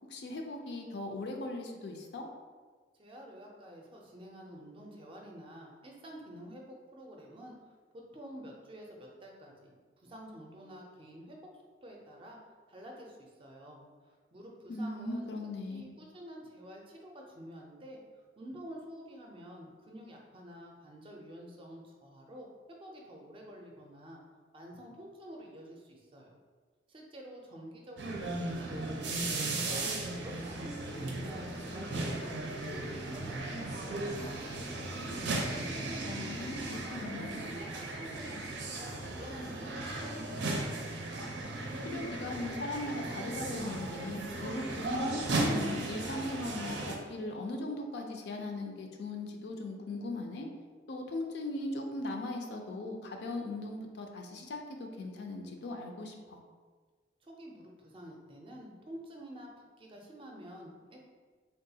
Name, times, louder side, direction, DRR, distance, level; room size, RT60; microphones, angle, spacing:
voice 1, 0.1-2.2 14.7-15.8 36.0-37.4 41.9-50.5 50.9-56.4, left 2 dB, 70° left, 2 dB, 0.4 m, -39 dB
voice 2, 3.0-7.6 7.9-11.4 11.8-12.4 12.7-22.5 22.8-24.2 24.5-26.3 26.9-32.4 32.7-35.0 35.6-40.5 57.2-59.5 59.8-61.0, equal, 30° right, 0 dB, 0.4 m, -49 dB
sound 1, 28.0-46.9, right 2 dB, 85° right, 0.5 m, -36 dB
3.5 x 2.3 x 2.7 m, 1.5 s
head